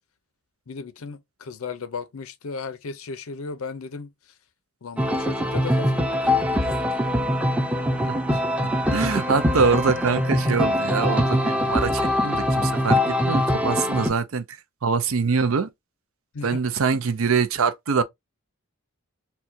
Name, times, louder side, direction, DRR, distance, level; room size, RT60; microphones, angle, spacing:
voice 1, 0.7-4.1 4.8-6.9 16.3-16.6, left 4 dB, 80° left, 0.6 m, -36 dB
sound 1, 5.0-14.1, left 1 dB, 5° right, 0.6 m, -23 dB
voice 2, 8.0-14.4 14.8-15.7 16.4-18.0, right 5 dB, 75° right, 0.5 m, -24 dB
4.3 x 2.3 x 2.6 m
head